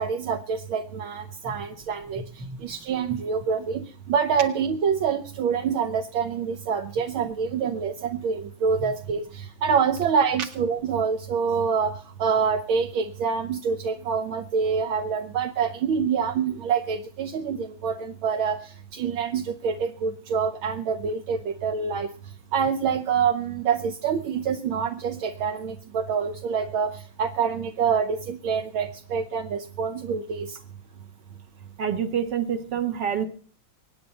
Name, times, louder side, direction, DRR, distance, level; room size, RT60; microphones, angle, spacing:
voice 1, 0.0-2.2 2.6-22.1 22.5-30.6, right 6 dB, 75° right, 5 dB, 1.7 m, -26 dB
voice 2, 31.8-33.3, right 8 dB, 60° right, 7 dB, 2.1 m, -27 dB
24.5 x 9.7 x 4.2 m, 0.44 s
omnidirectional pair, 2.3 m